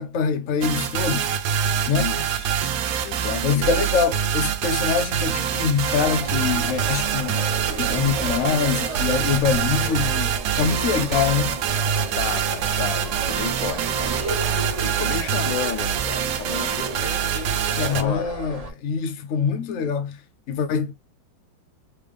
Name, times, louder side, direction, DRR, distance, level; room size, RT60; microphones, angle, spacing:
voice 1, 0.0-1.3 1.9-2.2 3.4-11.6 17.7-20.2 20.5-20.9, left 6 dB, 55° left, 0.9 m, -24 dB
sound 1, 0.6-18.0, right 8 dB, 85° right, 0.7 m, -25 dB
voice 2, 1.9-2.5 3.0-3.7 12.1-14.1 14.8-18.3, left 10 dB, 90° left, 1.4 m, -33 dB
sound 2, 6.0-18.7, right 2 dB, 45° right, 0.5 m, -34 dB
3.4 x 3.4 x 3.4 m
omnidirectional pair, 2.1 m